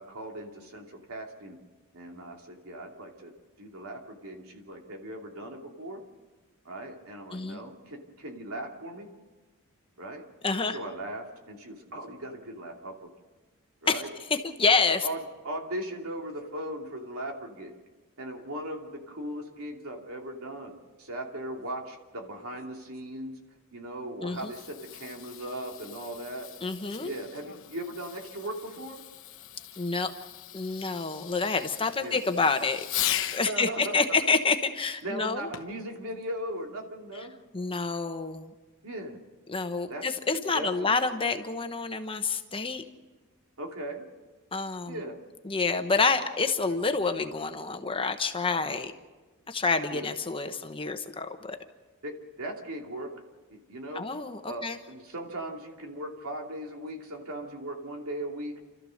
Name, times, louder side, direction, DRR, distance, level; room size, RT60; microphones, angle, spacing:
voice 1, 0.0-1.6 1.9-3.3 3.6-6.0 6.6-9.1 10.0-10.3 10.7-13.1 13.8-14.1 14.7-17.7 18.2-20.7 21.0-23.4 23.7-26.5 27.0-29.0 32.0-32.2 33.5-33.9 35.0-37.3 38.8-39.2 39.9-40.0 40.5-40.9 43.6-44.0 44.9-45.2 49.9-50.1 52.0-52.1 52.4-53.1 53.5-54.1 54.4-58.6, right 1 dB, 75° right, 2 dB, 2.9 m, -38 dB
voice 2, 10.4-10.8 13.9-14.0 14.3-15.1 24.2-24.5 26.6-27.1 29.8-30.1 30.5-32.8 33.3-35.5 37.5-38.5 39.5-42.8 44.5-45.0 45.4-48.9 49.5-51.6 53.9-54.8, left 4 dB, 25° left, 7 dB, 1.0 m, -28 dB
Fireworks, 24.2-33.5 35.5-35.9 36.6-36.7, left 12 dB, 65° left, 1.1 m, -38 dB
29.5 x 13.5 x 6.5 m, 1.2 s
head